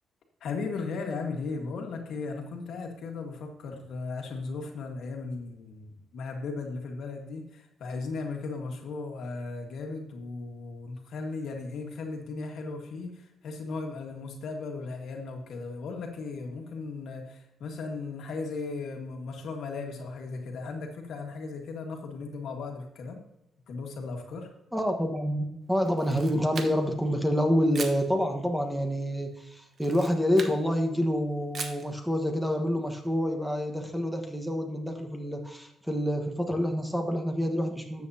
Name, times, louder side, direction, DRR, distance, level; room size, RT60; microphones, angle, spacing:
voice 1, 0.4-23.3 23.7-24.5, left 4 dB, 70° left, 2 dB, 1.7 m, -36 dB
voice 2, 24.7-38.1, equal, 5° right, 4 dB, 1.3 m, -27 dB
Camera, 25.9-27.0 27.7-28.1 29.7-30.6 31.5-31.9, right 5 dB, 55° right, 1.1 m, -39 dB
12.5 x 7.6 x 2.8 m, 0.89 s
cardioid pair, 90°, 0 cm